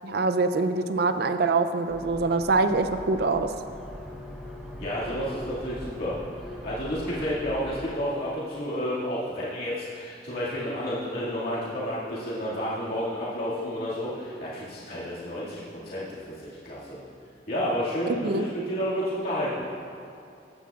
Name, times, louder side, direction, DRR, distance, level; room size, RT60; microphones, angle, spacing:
voice 1, 0.0-3.5 18.1-18.5, right 3 dB, 60° right, 9 dB, 0.5 m, -24 dB
sound 1, 1.9-7.9, equal, 5° right, 0.9 m, -41 dB
voice 2, 4.8-17.0 17.5-19.6, equal, 60° left, -9 dB, 2.1 m, -31 dB
15.0 x 9.4 x 2.4 m, 2.6 s
head